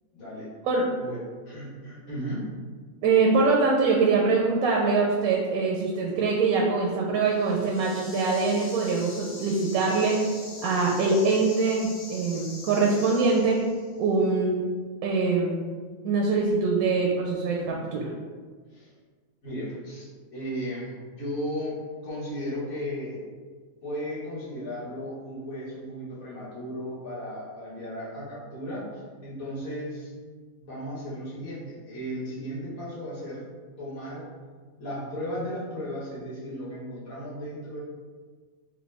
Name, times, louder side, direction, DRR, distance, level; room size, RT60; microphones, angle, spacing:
voice 1, 0.1-0.5 1.0-1.2 1.5-2.5 18.7-18.9 19.4-23.2 23.8-30.1 30.6-33.4 33.8-34.3 34.8-37.8, equal, 75° left, -9 dB, 1.8 m, -35 dB
voice 2, 3.0-10.2 10.6-13.6 14.0-14.7 15.0-15.7 16.0-18.1, right 4 dB, 80° right, -1 dB, 1.0 m, -23 dB
sound 1, 7.2-14.0, left 2 dB, 55° left, 0.6 m, -43 dB
4.6 x 2.1 x 3.3 m, 1.5 s
omnidirectional pair, 1.5 m